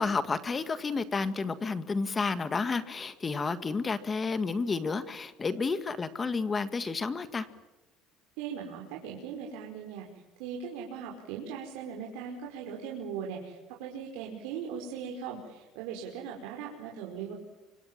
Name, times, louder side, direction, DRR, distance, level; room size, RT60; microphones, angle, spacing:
voice 1, 0.0-7.5, left 4 dB, 20° left, 11 dB, 1.8 m, -31 dB
voice 2, 8.4-17.3, right 7 dB, 85° right, -1 dB, 5.1 m, -39 dB
29.0 x 26.0 x 7.6 m, 1.1 s
cardioid pair, 150°, 0 cm